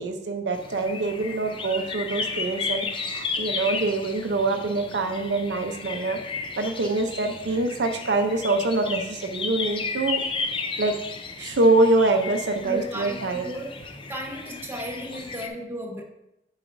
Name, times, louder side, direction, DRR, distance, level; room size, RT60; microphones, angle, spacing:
voice 1, 0.0-6.2 6.6-10.2 10.8-10.9 11.4-13.4, right 2 dB, 75° right, 5 dB, 0.6 m, -24 dB
sound 1, 0.5-15.5, left 4 dB, 30° left, 0.5 m, -34 dB
voice 2, 12.6-13.2 13.4-16.0, equal, 15° right, 1 dB, 0.8 m, -35 dB
7.8 x 4.8 x 2.6 m, 0.86 s
head